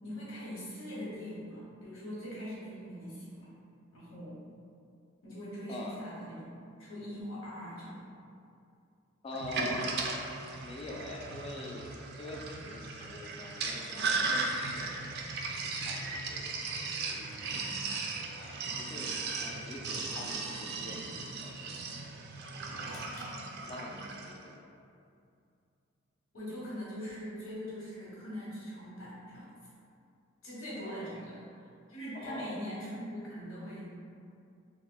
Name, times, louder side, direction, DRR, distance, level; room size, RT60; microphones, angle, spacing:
voice 1, 0.0-3.5 3.9-4.4 5.2-6.5 6.8-8.1 26.3-29.6 30.4-33.8, equal, 80° left, -8 dB, 1.1 m, -42 dB
voice 2, 5.7-6.0 9.2-10.2 10.6-15.2 15.6-17.7 18.3-21.7 22.7-23.0 23.6-24.6 30.8-31.2 32.1-32.6, left 2 dB, 25° left, 0 dB, 0.3 m, -45 dB
Sink (filling or washing), 9.3-24.4, right 3 dB, 50° right, 0.3 m, -37 dB
sound 1, 22.8-24.3, left 1 dB, 60° left, 0.7 m, -53 dB
2.9 x 2.1 x 3.7 m, 2.5 s
head